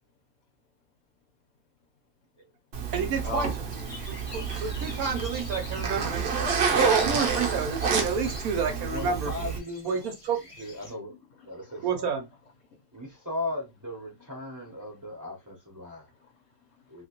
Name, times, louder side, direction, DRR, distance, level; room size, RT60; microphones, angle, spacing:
Zipper (clothing), 2.7-9.6, right 5 dB, 50° right, 0.8 m, -28 dB
voice 1, 2.9-3.5 4.1-6.3 6.8-9.3 9.8-10.4 11.8-12.2, right 6 dB, 65° right, 1.1 m, -30 dB
sound 1, 3.7-10.9, left 3 dB, 40° left, 0.4 m, -46 dB
voice 2, 8.7-10.1 10.6-11.1 11.5-12.1 12.9-16.1 16.9-17.0, left 2 dB, 15° right, 0.6 m, -37 dB
voice 3, 11.1-11.9 12.8-12.9 15.9-17.0, left 4 dB, 60° left, 1.0 m, -40 dB
2.9 x 2.9 x 2.9 m
omnidirectional pair, 1.8 m